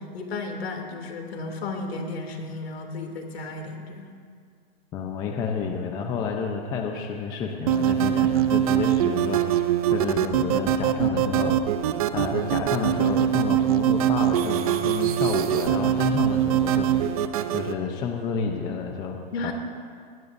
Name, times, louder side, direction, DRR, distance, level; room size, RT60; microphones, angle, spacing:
voice 1, 0.0-4.1 19.3-19.5, left 3 dB, 80° left, 2 dB, 2.9 m, -33 dB
voice 2, 4.9-11.6 12.1-19.2 19.4-19.5, left 6 dB, 15° left, 3 dB, 0.7 m, -30 dB
sound 1, 7.7-17.7, right 11 dB, 35° right, 0.6 m, -23 dB
20.0 x 19.5 x 2.7 m, 2.1 s
hypercardioid pair, 165°, 30 cm